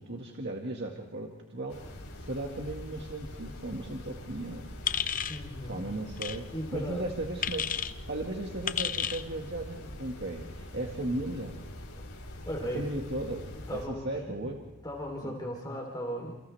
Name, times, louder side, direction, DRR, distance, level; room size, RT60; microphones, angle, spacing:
voice 1, 0.0-4.6 5.7-6.5 6.7-7.7 8.1-11.6 12.7-14.6 15.2-15.3, right 1 dB, 50° right, 0 dB, 1.9 m, -36 dB
sound 1, 1.7-13.9, left 1 dB, 80° left, 4.2 m, -44 dB
sound 2, 4.3-15.1, equal, 55° left, 2.7 m, -54 dB
sound 3, 4.9-5.4 6.2-6.4 7.4-7.9 8.7-9.2, left 8 dB, 35° left, 0.7 m, -31 dB
voice 2, 5.3-6.0 6.5-7.1 12.4-12.9 13.5-14.4 14.8-16.3, equal, 20° left, 0 dB, 3.5 m, -37 dB
29.5 x 29.0 x 3.5 m, 1.1 s
head